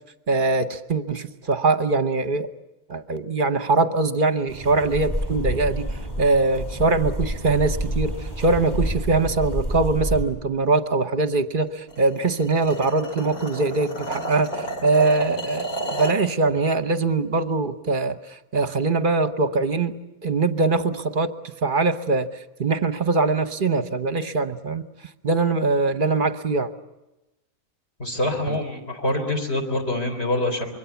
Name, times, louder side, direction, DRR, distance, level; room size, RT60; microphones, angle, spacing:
voice 1, 0.3-2.5 2.9-5.9 6.2-14.5 14.8-18.2 18.5-21.3 21.6-22.3 22.6-24.8 25.2-26.7 28.5-28.6, right 3 dB, 40° right, 10 dB, 1.0 m, -22 dB
sound 1, 4.5-10.2, equal, 30° left, 5.9 m, -28 dB
sound 2, 11.9-16.2, right 1 dB, 85° left, 3.0 m, -32 dB
voice 2, 28.0-30.7, left 1 dB, 45° left, 2 dB, 4.2 m, -25 dB
25.5 x 22.5 x 7.1 m, 0.98 s
omnidirectional pair, 1.5 m